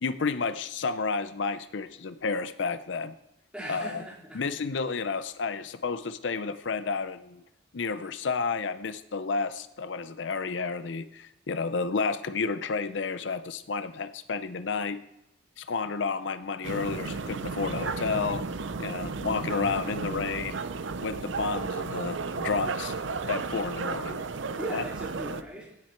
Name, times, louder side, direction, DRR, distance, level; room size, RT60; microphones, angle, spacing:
voice 1, 0.0-3.1 3.7-4.0 4.3-7.4 7.7-15.0 15.6-18.4 18.8-20.6 21.0-22.9 23.3-24.2 24.7-24.8, left 4 dB, 75° left, 12 dB, 0.6 m, -31 dB
voice 2, 3.5-4.4 24.4-25.8, equal, 5° right, -6 dB, 3.8 m, -39 dB
sound 1, 16.6-25.4, right 4 dB, 80° right, 0.7 m, -33 dB
17.0 x 7.5 x 4.5 m, 0.86 s
head